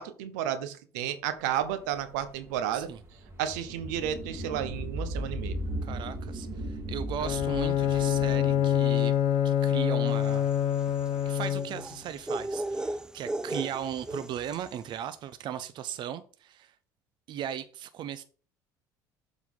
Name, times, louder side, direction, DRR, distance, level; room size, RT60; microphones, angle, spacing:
voice 1, 0.0-2.9 3.4-5.6, right 10 dB, 85° right, 0.9 m, -32 dB
sound 1, 1.6-10.6, right 1 dB, 30° right, 2.2 m, -37 dB
voice 2, 5.8-9.1 9.4-10.5 11.3-16.7 17.3-18.2, right 10 dB, 55° right, 0.6 m, -37 dB
Bowed string instrument, 7.2-12.0, left 9 dB, 65° left, 0.8 m, -26 dB
sound 2, 10.2-14.8, right 1 dB, 10° right, 0.4 m, -36 dB
7.3 x 4.1 x 5.3 m
supercardioid pair, 80°, 9 cm